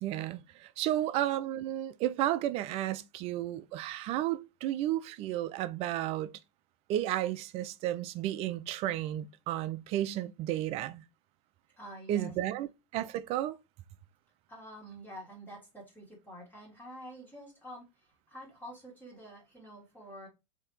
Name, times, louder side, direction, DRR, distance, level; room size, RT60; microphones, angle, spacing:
voice 1, 0.0-6.3 6.9-11.0 12.1-13.6, right 13 dB, 40° right, 0.4 m, -33 dB
voice 2, 11.8-12.3 14.5-20.3, equal, 10° left, 1.6 m, -48 dB
3.3 x 2.8 x 3.0 m
hypercardioid pair, 110°, 16 cm